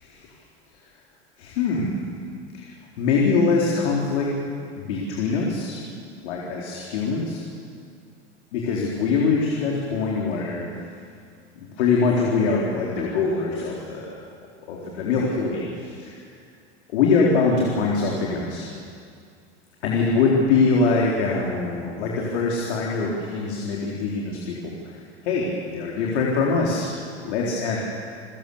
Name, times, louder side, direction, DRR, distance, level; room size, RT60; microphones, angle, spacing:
voice 1, 0.0-0.3 1.4-2.0 2.5-4.3 4.8-5.8 6.2-7.4 8.5-10.7 11.5-14.1 14.7-16.2 16.9-18.7 19.8-26.9 27.2-27.8, left 4 dB, 75° left, -3 dB, 4.1 m, -23 dB
29.0 x 17.0 x 7.1 m, 2.3 s
hypercardioid pair, 105°, 33 cm